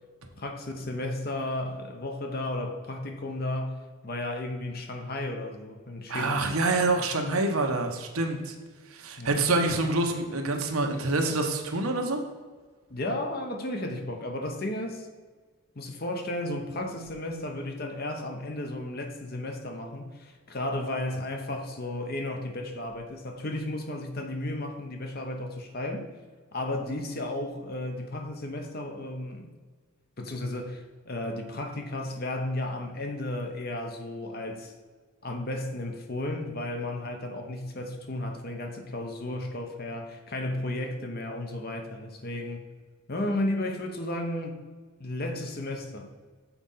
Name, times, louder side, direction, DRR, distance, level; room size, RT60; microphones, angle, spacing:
voice 1, 0.4-6.4 9.2-9.5 12.9-15.1 15.8-26.1 26.5-29.5 30.2-34.7 35.2-42.6 43.1-44.6 45.0-46.1, left 1 dB, 45° left, 4 dB, 0.9 m, -33 dB
voice 2, 6.1-8.5 8.9-12.2, right 2 dB, 80° right, 4 dB, 1.0 m, -26 dB
7.1 x 4.3 x 5.5 m, 1.5 s
head